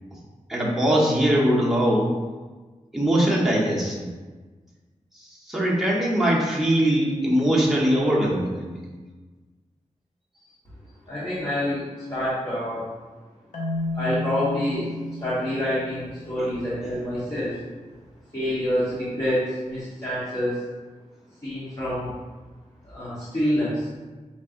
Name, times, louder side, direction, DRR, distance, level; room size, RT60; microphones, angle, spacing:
voice 1, 0.5-2.1 2.9-4.1 5.2-9.0 16.4-16.5, right 1 dB, 5° right, -5 dB, 1.1 m, -22 dB
voice 2, 11.1-12.9 13.9-14.9 15.2-17.6 18.3-20.6 21.4-22.1 22.8-23.9, equal, 30° left, -11 dB, 1.4 m, -27 dB
Marimba xylophone, 13.5-16.5, left 1 dB, 75° left, 0.8 m, -32 dB
5.8 x 3.2 x 2.6 m, 1.3 s
cardioid pair, 65°, 13 cm